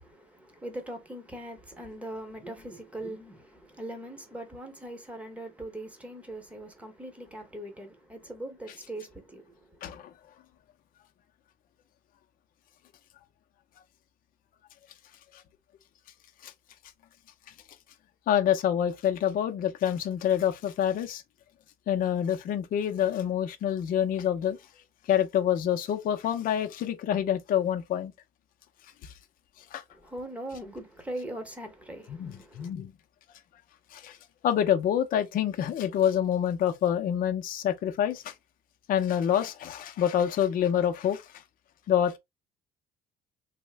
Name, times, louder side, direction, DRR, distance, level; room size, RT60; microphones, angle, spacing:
voice 1, 0.0-10.0 29.9-32.7, right 1 dB, 10° right, 0.9 m, -41 dB
voice 2, 9.8-10.1 16.4-16.5 18.3-21.2 21.9-24.6 25.1-28.1 29.0-29.1 29.7-29.8 32.1-32.9 33.9-34.2 34.4-38.3 38.9-41.3 41.9-42.2, left 9 dB, 55° left, 0.5 m, -27 dB
3.1 x 2.1 x 3.2 m
cardioid pair, 110°, 17 cm